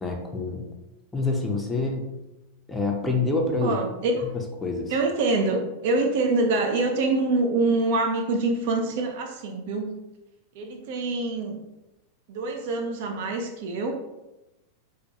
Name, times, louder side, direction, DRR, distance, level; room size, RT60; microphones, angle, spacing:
voice 1, 0.0-0.6 1.1-2.1 2.7-3.8 4.6-4.9, left 3 dB, 10° left, 1 dB, 0.4 m, -26 dB
voice 2, 3.6-4.2 4.9-10.0 10.5-11.6 12.3-13.9, right 3 dB, 50° right, 3 dB, 0.3 m, -25 dB
2.2 x 2.2 x 2.7 m, 0.98 s
figure-of-eight pair, 90°, 0 cm